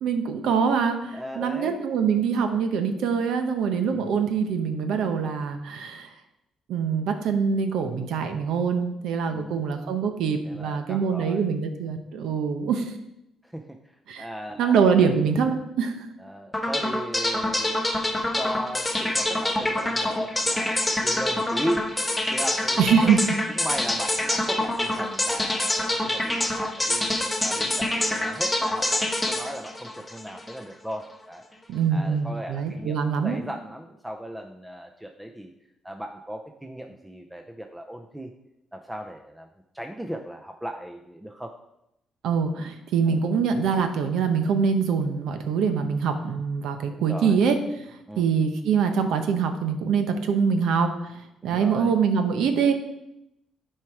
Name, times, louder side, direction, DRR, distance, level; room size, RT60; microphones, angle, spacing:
voice 1, 0.0-6.1 6.7-12.9 14.1-14.3 14.6-16.1 22.8-23.2 31.7-33.4 42.2-47.6 47.9-52.7, right 6 dB, 80° right, 7 dB, 0.9 m, -24 dB
voice 2, 1.1-1.8 3.9-4.1 9.3-9.7 10.5-11.5 13.4-13.8 14.2-15.1 16.2-20.8 21.0-23.2 23.6-27.1 27.4-31.4 31.9-35.5 35.8-38.3 38.7-39.5 39.7-41.5 43.1-43.2 46.8-47.4 48.1-48.3 51.4-51.9, equal, 5° right, 4 dB, 0.6 m, -37 dB
sound 1, 16.5-30.6, left 1 dB, 10° left, 1.2 m, -26 dB
7.5 x 4.6 x 4.8 m, 0.84 s
cardioid pair, 90°, 0 cm